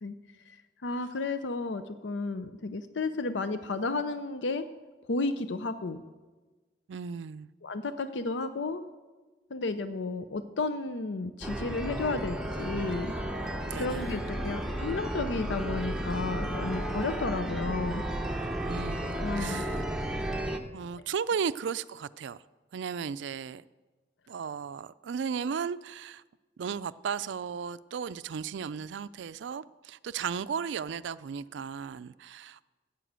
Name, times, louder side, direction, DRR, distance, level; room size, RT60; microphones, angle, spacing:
voice 1, 0.5-4.7 5.1-6.0 7.6-8.8 9.5-13.2 13.8-18.0 19.1-19.7, left 3 dB, 80° left, 11 dB, 0.6 m, -32 dB
voice 2, 6.9-7.5 13.7-14.2 18.7-19.1 19.4-19.8 20.7-22.4 22.7-23.6 24.3-26.2 26.6-32.7, right 6 dB, 80° right, 17 dB, 0.4 m, -35 dB
sound 1, 11.4-20.6, right 1 dB, 5° right, 0.8 m, -33 dB
11.0 x 8.3 x 8.0 m, 1.3 s
head